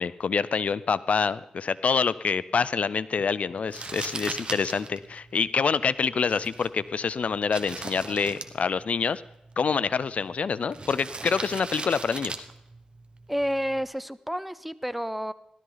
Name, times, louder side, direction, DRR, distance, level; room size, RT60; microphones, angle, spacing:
voice 1, 0.0-9.2 9.6-12.3, left 5 dB, 65° left, 18 dB, 0.4 m, -26 dB
Crumpling crinkling, 3.7-13.8, right 3 dB, 45° right, 1.3 m, -40 dB
voice 2, 13.3-15.3, equal, 5° right, 15 dB, 0.7 m, -30 dB
16.0 x 12.5 x 4.0 m, 0.88 s
cardioid pair, 60°, 2 cm